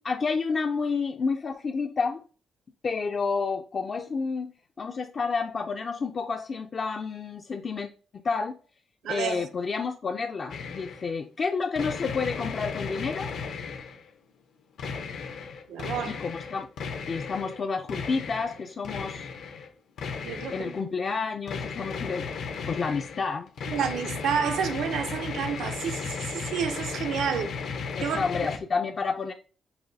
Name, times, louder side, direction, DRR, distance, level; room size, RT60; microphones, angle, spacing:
voice 1, 0.0-2.2 2.8-4.5 4.8-8.6 9.1-13.3 16.1-16.7 17.1-19.3 20.5-22.3 22.7-23.5 28.0-29.3, left 4 dB, 40° left, 0.3 m, -30 dB
voice 2, 9.0-9.5 15.7-16.2 20.2-20.7 23.7-27.5 28.0-28.2, right 7 dB, 85° right, 0.5 m, -30 dB
sound 1, 10.5-11.1 11.8-14.1 14.8-17.6 17.9-19.7 20.0-20.8 21.5-28.6, left 5 dB, 75° left, 0.7 m, -35 dB
5.4 x 2.5 x 2.6 m
cardioid pair, 115°, 0 cm